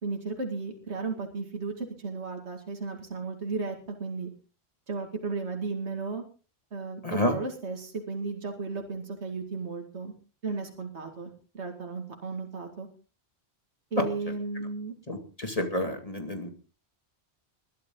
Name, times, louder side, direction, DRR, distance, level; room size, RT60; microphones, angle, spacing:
voice 1, 0.0-4.3 4.9-6.2 6.7-10.1 10.4-11.3 11.5-12.9 13.9-14.9, right 4 dB, 75° right, 3 dB, 2.6 m, -34 dB
voice 2, 7.0-7.4 14.0-14.1 15.1-16.5, left 1 dB, 35° left, 4 dB, 2.3 m, -29 dB
21.5 x 13.0 x 3.9 m, 0.37 s
omnidirectional pair, 1.1 m